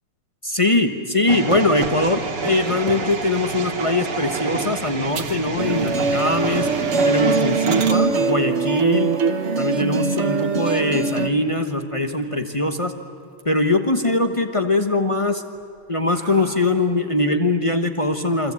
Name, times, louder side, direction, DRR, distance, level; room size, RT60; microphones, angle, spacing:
voice 1, 0.4-6.7 7.0-9.1 9.6-12.9 13.4-15.4 15.9-18.5, left 2 dB, 20° left, 6 dB, 0.9 m, -21 dB
sound 1, 1.3-7.9, right 4 dB, 90° right, 3.1 m, -28 dB
sound 2, 1.5-3.3 3.9-4.2 4.6-4.7 5.1-5.5 5.8-6.3 6.7-6.8 7.3-8.0 10.0-10.7 11.2-11.3 11.7-11.8 12.1-12.9 13.2-13.8 14.2-14.8 15.4-17.1, right 6 dB, 65° right, 2.1 m, -37 dB
sound 3, 5.6-11.3, right 4 dB, 40° right, 1.2 m, -22 dB
28.5 x 24.5 x 8.5 m, 2.4 s
omnidirectional pair, 2.3 m